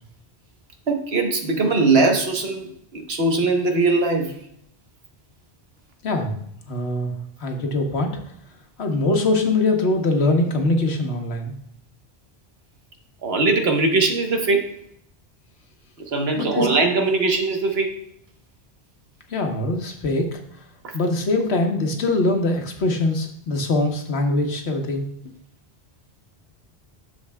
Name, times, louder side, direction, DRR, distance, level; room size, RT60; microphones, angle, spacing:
voice 1, 0.9-4.4 13.2-14.7 16.1-17.9 20.8-20.9, right 3 dB, 70° right, 3 dB, 1.3 m, -21 dB
voice 2, 6.0-6.4 6.7-7.1 7.4-8.2 8.8-11.6 16.4-16.7 19.3-20.4 20.9-25.0, left 2 dB, 80° left, 3 dB, 1.4 m, -22 dB
10.5 x 7.0 x 2.2 m, 0.72 s
omnidirectional pair, 1.1 m